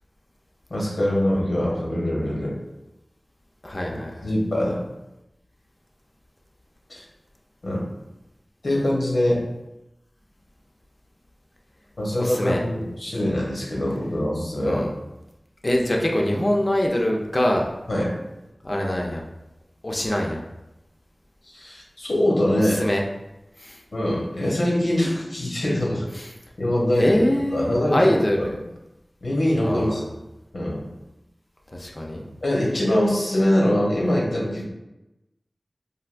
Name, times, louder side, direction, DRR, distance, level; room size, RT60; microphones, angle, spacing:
voice 1, 0.7-2.5 3.9-4.8 6.9-7.0 7.6-7.8 8.6-9.4 12.0-14.8 17.9-18.1 21.4-22.8 23.9-26.0 26.6-27.2 27.5-28.1 29.2-30.0 30.5-30.8 32.4-34.6, left 1 dB, 85° left, -3 dB, 0.8 m, -23 dB
voice 2, 3.6-4.2 12.2-12.6 14.6-14.9 15.6-17.7 18.6-19.2 19.8-20.4 22.8-23.0 23.6-23.8 26.1-26.3 27.0-28.5 29.6-30.1 31.7-32.3, left 1 dB, 40° left, 0 dB, 0.5 m, -23 dB
3.3 x 2.6 x 2.4 m, 0.94 s
wide cardioid pair, 50°, 0 cm